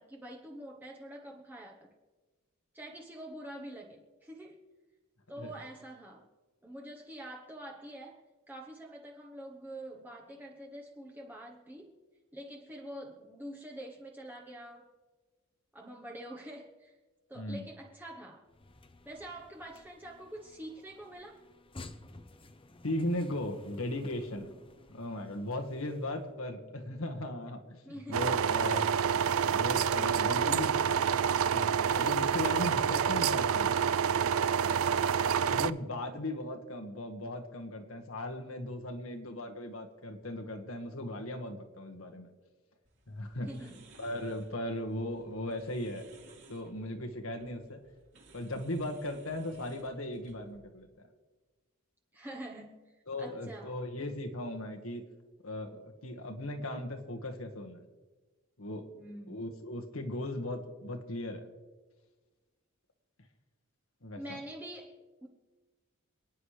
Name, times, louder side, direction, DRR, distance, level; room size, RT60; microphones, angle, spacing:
voice 1, 0.0-1.9 2.7-4.6 5.3-6.2 6.6-12.0 12.3-14.9 15.7-17.0 17.3-18.4 19.0-21.4 27.8-28.3 43.5-43.8 52.1-52.9 53.2-53.7 58.9-59.4 64.1-65.3, right 1 dB, 10° right, -1 dB, 1.1 m, -46 dB
voice 2, 17.4-17.7 22.8-24.5 24.9-28.8 29.4-30.8 31.4-33.8 35.5-42.3 43.1-43.5 44.0-46.0 46.5-47.8 48.3-50.9 53.1-55.0 55.4-57.9 58.6-58.8 59.3-61.5 64.0-64.4, left 1 dB, 80° left, 4 dB, 1.7 m, -37 dB
sound 1, 18.5-26.3, left 2 dB, 25° left, 0.8 m, -54 dB
sound 2, 28.1-35.7, right 7 dB, 80° right, 0.4 m, -28 dB
sound 3, 42.8-50.6, right 2 dB, 60° right, 3.2 m, -59 dB
28.0 x 9.8 x 3.3 m, 1.3 s
head